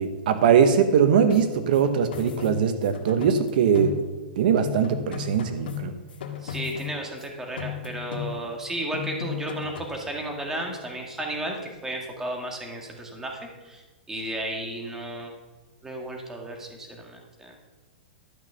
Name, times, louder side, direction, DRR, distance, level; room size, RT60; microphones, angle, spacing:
voice 1, 0.0-3.9 4.4-5.9, right 7 dB, 65° right, 9 dB, 1.0 m, -21 dB
sound 1, 1.3-4.3 4.6-7.3 7.6-8.6 8.9-10.0, left 9 dB, 80° left, 1.7 m, -36 dB
voice 2, 6.4-15.3 15.8-17.5, right 1 dB, 10° right, 1 dB, 1.8 m, -34 dB
12.0 x 6.1 x 6.8 m, 1.2 s
hypercardioid pair, 150°, 5 cm